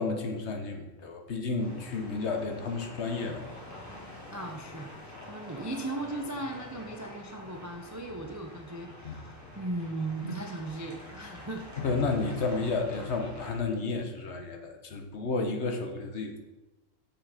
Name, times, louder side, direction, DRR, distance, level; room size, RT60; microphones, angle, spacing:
voice 1, 0.0-3.5 9.0-9.1 10.2-10.3 11.8-16.4, left 3 dB, 60° left, 4 dB, 1.2 m, -32 dB
sound 1, 1.6-13.5, left 1 dB, 10° left, 1.8 m, -47 dB
voice 2, 4.3-11.6, right 2 dB, 25° right, 2 dB, 0.4 m, -37 dB
6.7 x 6.2 x 4.9 m, 1.1 s
omnidirectional pair, 1.4 m